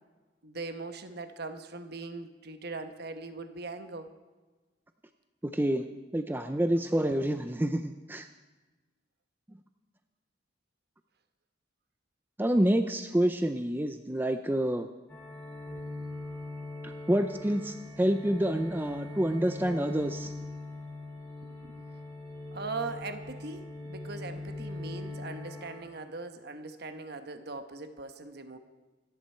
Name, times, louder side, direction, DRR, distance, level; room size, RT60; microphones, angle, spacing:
voice 1, 0.4-4.1 21.4-21.7 22.5-28.6, right 3 dB, 55° right, 8 dB, 1.1 m, -40 dB
voice 2, 5.4-5.9 6.1-8.3 12.4-14.9 16.8-20.3, right 1 dB, 10° right, 8 dB, 0.5 m, -28 dB
sound 1, 15.1-25.8, left 2 dB, 10° left, 3.3 m, -41 dB
26.5 x 10.5 x 4.5 m, 1.2 s
head